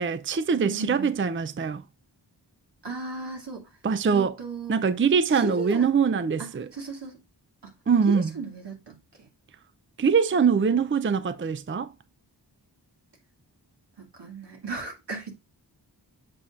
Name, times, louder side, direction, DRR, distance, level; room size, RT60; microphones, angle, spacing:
voice 1, 0.0-1.8 3.8-4.4 4.7-6.7 7.9-8.3 10.0-11.9, right 6 dB, 30° right, 0.5 m, -23 dB
voice 2, 0.6-1.1 2.8-3.7 4.1-4.7 5.3-5.9 6.4-7.2 7.6-7.7 8.1-9.3 14.1-15.3, right 3 dB, 80° right, 2.3 m, -36 dB
7.7 x 5.5 x 2.5 m
wide cardioid pair, 50°, 41 cm